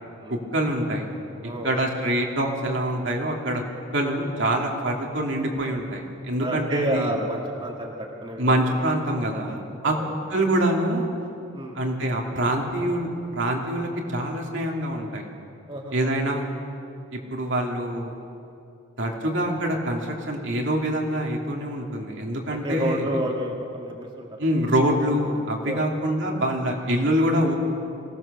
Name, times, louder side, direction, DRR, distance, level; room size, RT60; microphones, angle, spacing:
voice 1, 0.3-1.1 1.6-3.6 3.9-7.1 8.4-9.9 10.3-11.1 11.7-15.3 15.9-16.4 17.1-18.1 19.0-23.1 24.4-27.6, right 1 dB, 70° right, 0 dB, 2.6 m, -25 dB
voice 2, 6.4-8.8 9.8-10.1 11.2-11.8 15.7-15.9 19.1-19.2 22.5-24.3 25.7-25.9, right 1 dB, 25° right, -1 dB, 2.0 m, -30 dB
23.5 x 17.5 x 6.8 m, 2.6 s
head